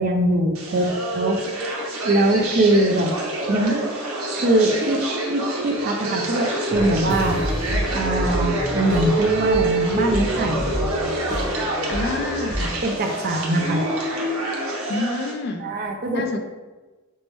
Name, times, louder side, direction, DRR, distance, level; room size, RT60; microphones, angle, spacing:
voice 1, 0.0-1.4 2.0-3.1 3.5-3.9 4.3-5.0 5.3-7.4 7.9-10.7 12.8-13.8 15.6-16.4, right 1 dB, 45° right, 3 dB, 0.4 m, -22 dB
sound 1, 0.5-15.3, right 2 dB, 85° right, 0.8 m, -26 dB
sound 2, 6.7-12.8, equal, 10° left, 0.8 m, -29 dB
voice 2, 11.9-12.8 14.9-15.7 16.1-16.4, left 3 dB, 50° left, 5 dB, 0.3 m, -28 dB
4.4 x 2.0 x 3.0 m, 1.2 s
head